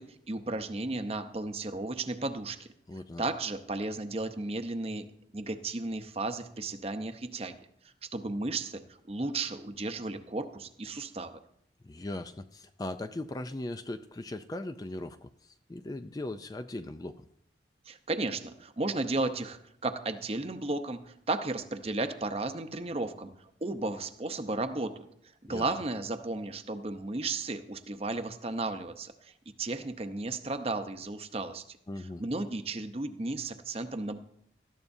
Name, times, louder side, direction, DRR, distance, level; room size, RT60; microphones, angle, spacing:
voice 1, 0.0-2.7 3.2-5.1 5.3-7.6 8.0-8.8 9.1-11.4 17.9-25.1 25.5-29.3 29.6-34.2, right 2 dB, 35° right, 8 dB, 0.8 m, -34 dB
voice 2, 2.9-3.2 11.8-17.3 25.5-25.7 31.9-32.2, left 1 dB, 20° left, 9 dB, 0.4 m, -39 dB
18.0 x 13.5 x 2.7 m, 0.71 s
head